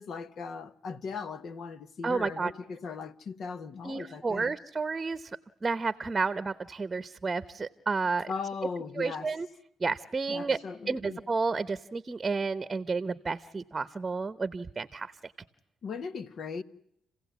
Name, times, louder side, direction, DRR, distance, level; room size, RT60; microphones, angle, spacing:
voice 1, 0.0-4.5 8.3-9.3 10.3-11.2 15.8-16.6, left 5 dB, 60° left, 1.4 m, -38 dB
voice 2, 2.0-2.5 3.8-5.3 5.6-8.3 9.0-9.5 9.8-10.6 10.9-15.3, right 4 dB, 25° right, 1.0 m, -31 dB
29.5 x 16.5 x 9.4 m
cardioid pair, 90°, 0 cm